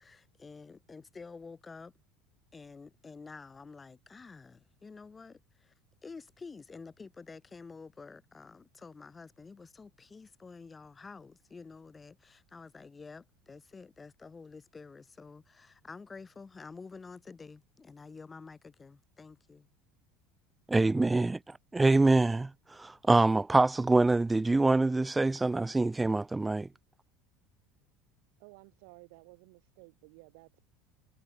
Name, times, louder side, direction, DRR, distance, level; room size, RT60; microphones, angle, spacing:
voice 1, 0.0-1.9 2.5-5.7 6.0-19.7, left 4 dB, 15° left, 3.2 m, -49 dB
voice 2, 20.7-21.4 21.7-26.7, right 2 dB, 10° right, 0.6 m, -25 dB
voice 3, 28.4-30.6, right 33 dB, 75° right, 5.7 m, -55 dB
supercardioid pair, 130°, 0 cm